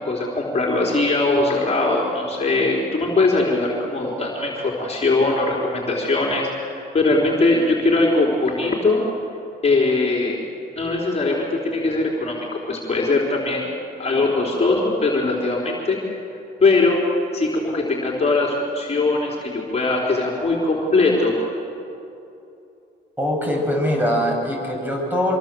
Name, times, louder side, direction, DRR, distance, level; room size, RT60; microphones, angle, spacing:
voice 1, 0.0-9.0 9.6-10.4 10.8-13.7 14.0-16.2 16.6-17.0 17.3-21.3, left 3 dB, 30° left, -2 dB, 4.2 m, -21 dB
voice 2, 23.2-25.4, equal, 10° right, -1 dB, 7.9 m, -22 dB
25.5 x 23.0 x 7.9 m, 2.8 s
cardioid pair, 90°, 20 cm